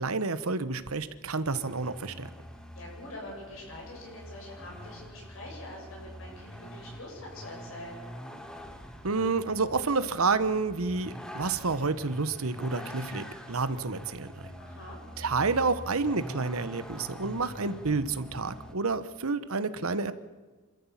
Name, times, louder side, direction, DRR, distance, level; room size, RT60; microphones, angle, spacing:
voice 1, 0.0-2.3 9.0-14.3 15.2-20.1, right 4 dB, 75° right, 13 dB, 1.1 m, -29 dB
Vehicle, 1.5-18.8, equal, 5° left, 1.5 m, -45 dB
voice 2, 2.7-8.0 14.6-15.0, left 1 dB, 65° left, -2 dB, 7.9 m, -44 dB
27.0 x 13.5 x 7.4 m, 1.3 s
head